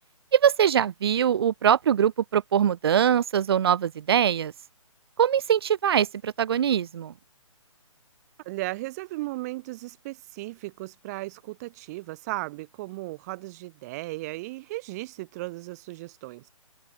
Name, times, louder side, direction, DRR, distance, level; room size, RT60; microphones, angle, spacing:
voice 1, 0.3-4.5 5.2-7.1, right 9 dB, 45° right, 0.4 m, -22 dB
voice 2, 8.5-16.4, right 20 dB, 30° right, 5.2 m, -36 dB
open air
hypercardioid pair, 145°, 18 cm